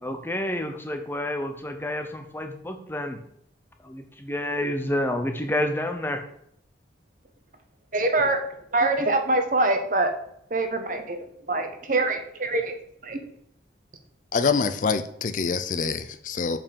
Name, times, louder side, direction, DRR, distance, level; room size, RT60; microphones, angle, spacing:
voice 1, 0.0-3.2 3.8-6.2, left 1 dB, 10° left, 0.8 m, -29 dB
voice 2, 7.9-8.4 8.7-10.1 10.5-11.2 11.5-12.7 13.0-13.2, right 2 dB, 45° right, 1.1 m, -24 dB
voice 3, 14.3-16.6, left 5 dB, 45° left, 0.4 m, -25 dB
7.1 x 5.5 x 5.2 m
head